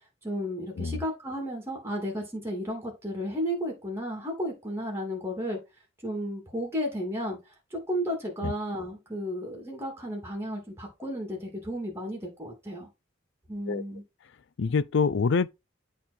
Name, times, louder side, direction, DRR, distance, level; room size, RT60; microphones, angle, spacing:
voice 1, 0.2-5.6 6.0-7.4 7.7-12.9 13.5-14.0, equal, 15° right, 2.8 m, -33 dB
voice 2, 14.6-15.5, left 5 dB, 65° left, 0.5 m, -25 dB
8.4 x 3.8 x 4.3 m
head